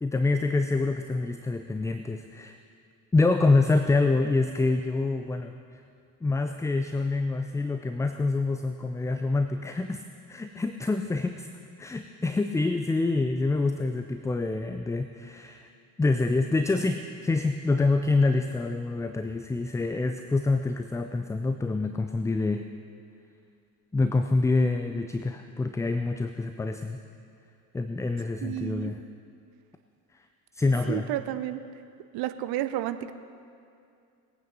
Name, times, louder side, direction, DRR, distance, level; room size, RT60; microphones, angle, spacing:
voice 1, 0.0-2.6 3.1-5.8 6.2-10.0 10.3-11.5 11.8-15.7 16.0-22.7 23.9-27.0 27.7-29.0 30.1-30.3 30.5-31.1, left 3 dB, 5° left, 7 dB, 0.4 m, -26 dB
voice 2, 28.4-28.9 30.9-31.6 32.1-33.1, right 13 dB, 50° right, 11 dB, 0.8 m, -31 dB
20.0 x 9.1 x 5.4 m, 2.4 s
figure-of-eight pair, 60°, 47 cm